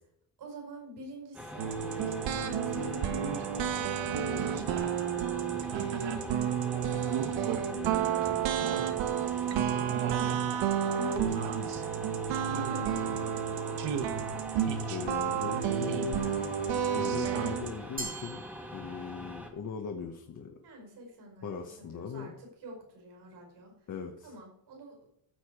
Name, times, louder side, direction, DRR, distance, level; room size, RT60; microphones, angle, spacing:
voice 1, 0.4-10.3 10.9-11.6 12.5-13.3 20.6-23.9 24.2-25.1, right 1 dB, 65° right, 0 dB, 5.4 m, -47 dB
sound 1, 1.3-19.5, left 1 dB, 5° right, 1.6 m, -44 dB
sound 2, 1.6-17.7, right 8 dB, 90° right, 1.4 m, -31 dB
voice 2, 14.9-16.3 16.9-18.4 18.7-20.5 21.4-22.3 23.9-24.3, left 6 dB, 40° left, 3 dB, 1.2 m, -39 dB
Glass, 18.0-19.4, right 3 dB, 20° right, 1.5 m, -42 dB
15.0 x 7.2 x 4.8 m, 0.74 s
cardioid pair, 160°, 44 cm